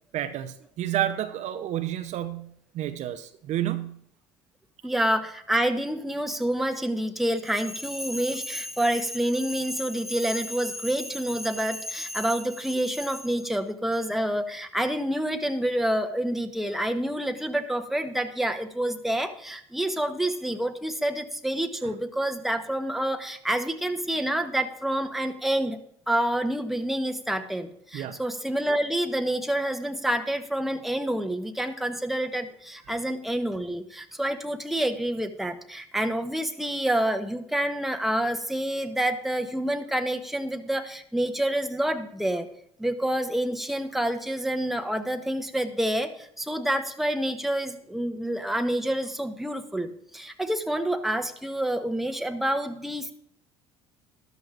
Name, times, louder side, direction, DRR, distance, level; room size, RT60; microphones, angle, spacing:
voice 1, 0.1-2.5 2.7-4.0 27.9-28.2, right 12 dB, 55° right, 8 dB, 0.8 m, -30 dB
voice 2, 4.8-25.8 26.1-42.5 42.8-53.1, right 1 dB, ahead, 6 dB, 1.0 m, -28 dB
13.5 x 12.0 x 2.5 m, 0.69 s
hypercardioid pair, 65°, 15 cm